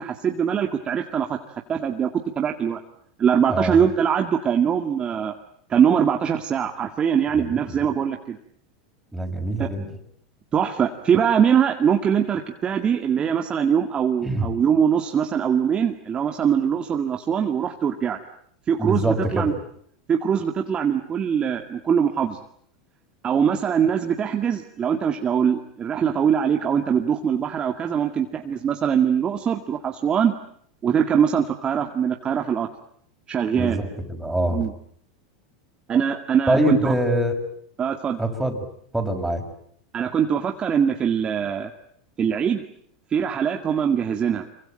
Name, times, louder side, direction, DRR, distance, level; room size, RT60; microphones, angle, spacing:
voice 1, 0.0-2.1 2.4-2.8 3.2-5.3 5.7-8.4 9.6-9.7 10.5-18.2 18.7-19.5 20.1-22.4 23.2-30.3 30.8-32.7 33.3-33.8 34.5-34.7 35.9-36.9 37.8-38.2 39.9-41.7 42.2-42.6 43.1-44.5, right 7 dB, 30° right, 4 dB, 2.2 m, -22 dB
voice 2, 7.4-7.8 9.1-9.9 14.2-14.5 18.8-19.6 33.5-34.7 36.5-37.4 38.2-38.6 38.9-39.4, right 1 dB, 5° right, 3 dB, 6.3 m, -24 dB
26.0 x 24.0 x 9.0 m, 0.66 s
hypercardioid pair, 105°, 3 cm